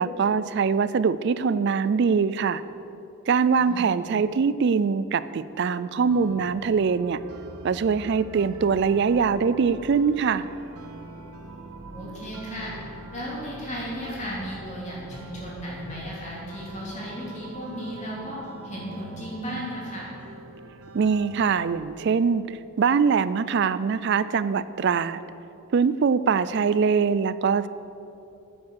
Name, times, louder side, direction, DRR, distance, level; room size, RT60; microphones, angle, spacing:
voice 1, 0.0-2.6 3.3-7.2 7.6-10.5 20.9-25.2 25.7-27.7, right 5 dB, 50° right, 15 dB, 0.3 m, -23 dB
voice 2, 3.6-4.1 11.9-12.7 13.1-20.1, equal, 30° left, -5 dB, 2.8 m, -35 dB
sound 1, 6.1-21.8, right 3 dB, 85° right, 0.9 m, -43 dB
9.8 x 9.5 x 6.5 m, 2.9 s
head